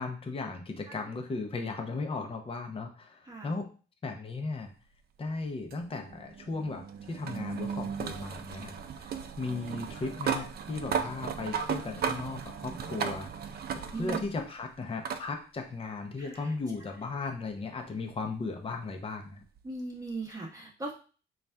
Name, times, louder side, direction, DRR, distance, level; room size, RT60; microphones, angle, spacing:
voice 1, 0.0-3.7 4.0-4.7 5.2-8.7 9.4-13.3 13.7-19.4, left 3 dB, 30° left, 4 dB, 0.7 m, -36 dB
sound 1, 5.7-14.6 15.0-15.2 16.6-16.7 19.6-19.7, right 7 dB, 55° right, 0.4 m, -35 dB
voice 2, 12.7-13.0 13.9-14.2 16.2-16.5 19.6-20.9, right 3 dB, 15° right, -3 dB, 0.9 m, -39 dB
4.0 x 2.4 x 3.3 m, 0.37 s
cardioid pair, 90°, 20 cm